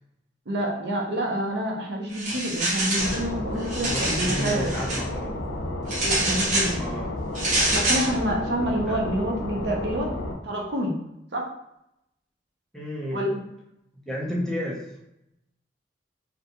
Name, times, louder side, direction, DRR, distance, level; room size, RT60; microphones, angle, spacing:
voice 1, 0.5-4.7 6.0-6.8 7.7-10.1 10.4-11.0 11.3-11.5 13.1-13.4, right 1 dB, 70° right, 0 dB, 0.6 m, -28 dB
sound 1, 2.1-3.2 3.6-5.0 5.9-6.8 7.4-8.1, right 1 dB, 45° right, 0.8 m, -26 dB
sound 2, 3.0-10.3, left 1 dB, 90° left, 0.5 m, -32 dB
voice 2, 3.7-5.3 6.7-7.1 8.9-9.0 12.7-13.2 14.1-14.8, equal, 5° left, -5 dB, 0.5 m, -31 dB
2.5 x 2.2 x 2.8 m, 0.83 s
head